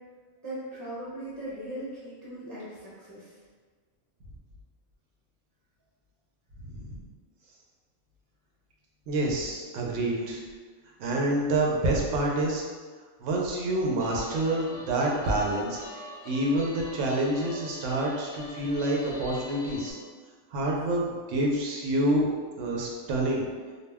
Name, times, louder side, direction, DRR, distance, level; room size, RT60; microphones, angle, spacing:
voice 1, 0.4-3.4, right 1 dB, 20° right, -8 dB, 0.9 m, -39 dB
voice 2, 6.6-7.0 9.1-10.4 11.0-12.6 13.2-20.0 20.5-22.3 22.6-23.4, right 1 dB, 80° right, -2 dB, 0.9 m, -27 dB
Guitar, 14.0-19.9, left 1 dB, 50° left, 0.6 m, -44 dB
2.3 x 2.1 x 3.3 m, 1.5 s
omnidirectional pair, 1.3 m